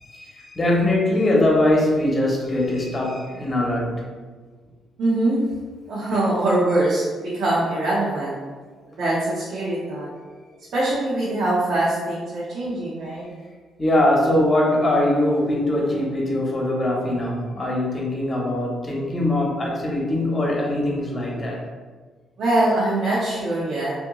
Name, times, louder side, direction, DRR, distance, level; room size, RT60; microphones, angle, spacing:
voice 1, 0.0-4.0 13.8-21.6, left 1 dB, 30° left, -2 dB, 0.9 m, -22 dB
voice 2, 5.0-5.4 5.9-8.4 9.0-10.1 10.7-13.3 22.4-23.9, right 2 dB, 70° right, -8 dB, 0.8 m, -23 dB
2.8 x 2.6 x 3.6 m, 1.4 s
cardioid pair, 90°, 0 cm